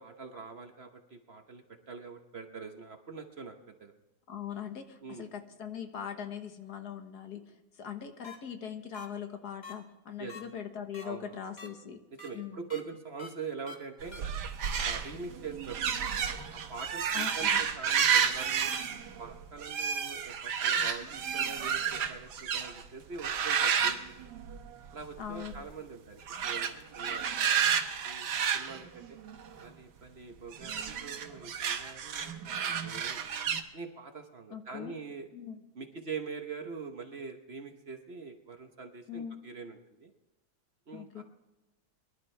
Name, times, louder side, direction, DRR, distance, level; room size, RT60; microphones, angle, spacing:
voice 1, 0.0-3.9 5.0-5.3 10.2-10.3 11.0-11.5 12.1-14.3 14.7-15.8 16.2-18.7 19.2-24.3 24.9-27.5 28.0-29.2 29.6-33.2 33.7-35.3 35.7-40.1 40.9-41.2, right 5 dB, 45° right, 5 dB, 1.1 m, -44 dB
voice 2, 4.3-12.0 12.3-12.7 17.1-17.7 25.2-25.7 34.5-35.0 35.3-35.6 39.1-39.4 40.9-41.2, left 8 dB, 75° left, 6 dB, 1.8 m, -41 dB
sound 1, 8.2-8.4 8.9-9.1 9.6-9.7 10.3-10.4 10.9-11.0 11.6-11.7 12.2-12.3 12.7-12.8 13.2-13.3 13.7-13.8 14.1-14.2, left 3 dB, 25° left, 2.0 m, -45 dB
sound 2, 14.0-22.8 23.2-24.9 25.2-25.6 26.2-29.6 30.5-33.6, right 7 dB, 80° right, 1.6 m, -31 dB
23.0 x 12.0 x 3.3 m, 1.0 s
omnidirectional pair, 1.8 m